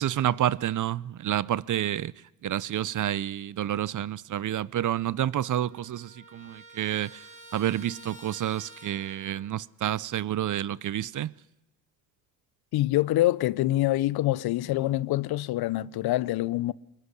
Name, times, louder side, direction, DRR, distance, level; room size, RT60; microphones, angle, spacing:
voice 1, 0.0-2.1 2.4-7.2 7.5-11.3, right 11 dB, 45° right, 0.9 m, -29 dB
Trumpet, 5.1-9.6, right 1 dB, 15° right, 5.8 m, -50 dB
voice 2, 12.7-16.7, left 16 dB, 60° left, 0.9 m, -25 dB
24.5 x 21.0 x 9.9 m
hypercardioid pair, 65°, 43 cm